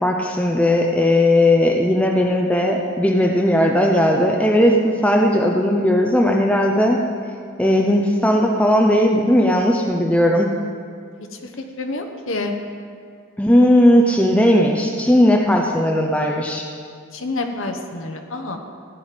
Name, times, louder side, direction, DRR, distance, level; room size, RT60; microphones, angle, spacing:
voice 1, 0.0-7.0 7.6-10.5 13.4-16.7, left 1 dB, 5° left, 0 dB, 0.6 m, -17 dB
voice 2, 11.8-12.5 17.1-18.6, left 2 dB, 60° left, 3 dB, 1.0 m, -27 dB
15.5 x 9.1 x 5.1 m, 2.2 s
head